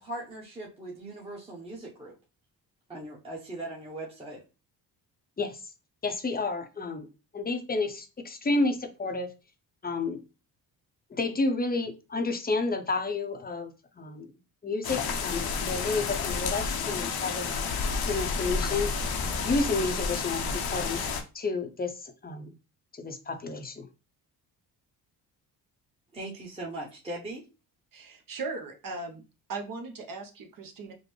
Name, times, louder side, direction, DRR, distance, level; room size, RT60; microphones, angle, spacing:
voice 1, 0.0-2.1 2.9-4.4 26.1-27.5, right 1 dB, 15° right, -4 dB, 0.9 m, -39 dB
voice 2, 6.0-7.1 7.3-9.3 9.8-10.2 11.1-14.3 14.6-17.5 18.1-18.9 19.4-22.5 22.9-23.9, left 3 dB, 20° left, 6 dB, 0.7 m, -30 dB
sound 1, 14.8-21.2, left 5 dB, 65° left, 0.8 m, -30 dB
voice 3, 27.9-29.2 29.5-30.9, right 3 dB, 55° right, 4 dB, 0.9 m, -38 dB
5.1 x 2.0 x 3.1 m, 0.30 s
cardioid pair, 95°, 41 cm